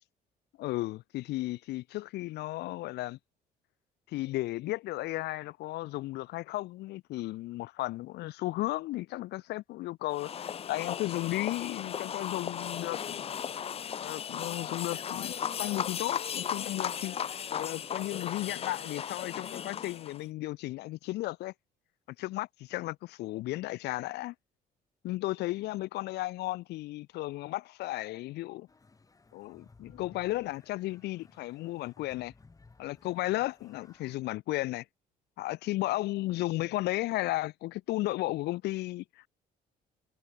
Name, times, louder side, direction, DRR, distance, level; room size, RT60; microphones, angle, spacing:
voice 1, 0.6-3.2 4.1-13.2 14.0-17.1 17.5-21.5 22.2-24.3 25.0-28.7 29.3-32.3 32.8-34.8 35.4-39.3, left 18 dB, 80° left, 1.3 m, -34 dB
sound 1, 10.1-20.2, left 8 dB, 35° left, 0.6 m, -36 dB
sound 2, 28.7-34.2, left 3 dB, 20° left, 4.8 m, -59 dB
cardioid pair, 110°, 17 cm